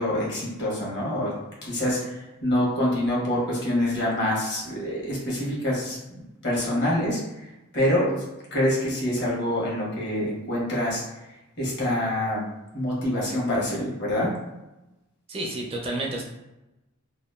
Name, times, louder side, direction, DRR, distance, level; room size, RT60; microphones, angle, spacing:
voice 1, 0.0-1.3 1.6-8.2 8.5-12.4 12.7-14.3, left 1 dB, 50° left, -5 dB, 1.1 m, -26 dB
voice 2, 15.3-16.2, right 2 dB, 25° right, -1 dB, 0.4 m, -30 dB
2.8 x 2.3 x 2.2 m, 0.97 s
head